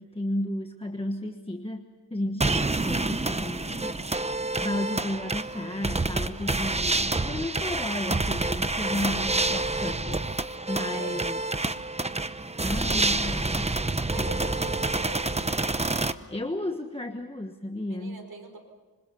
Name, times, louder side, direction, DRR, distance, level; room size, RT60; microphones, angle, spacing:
voice 1, 0.0-4.2 4.6-11.4 12.6-14.6 16.3-18.2, left 1 dB, 15° left, 4 dB, 1.3 m, -33 dB
sound 1, 2.4-16.1, right 2 dB, 15° right, 0.8 m, -28 dB
voice 2, 10.9-11.3 14.1-15.5 17.9-18.6, right 3 dB, 70° right, 4 dB, 4.9 m, -41 dB
26.5 x 26.0 x 5.6 m, 1.4 s
wide cardioid pair, 120°, 38 cm